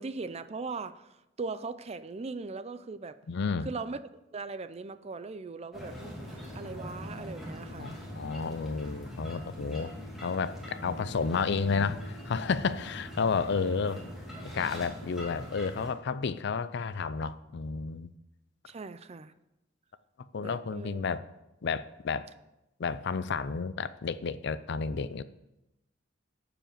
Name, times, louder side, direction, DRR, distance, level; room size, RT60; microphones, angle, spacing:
voice 1, 0.0-3.2 3.6-4.0 4.3-5.9 6.3-7.9 18.7-19.3 20.4-21.0, right 4 dB, 35° right, 13 dB, 0.5 m, -39 dB
voice 2, 3.3-3.7 7.8-9.9 10.2-14.0 14.4-18.1 20.3-21.2 21.6-22.3 22.8-25.2, left 5 dB, 60° left, 15 dB, 0.5 m, -31 dB
sound 1, 5.7-15.9, equal, ahead, 2.5 m, -42 dB
11.5 x 4.9 x 7.5 m, 0.93 s
head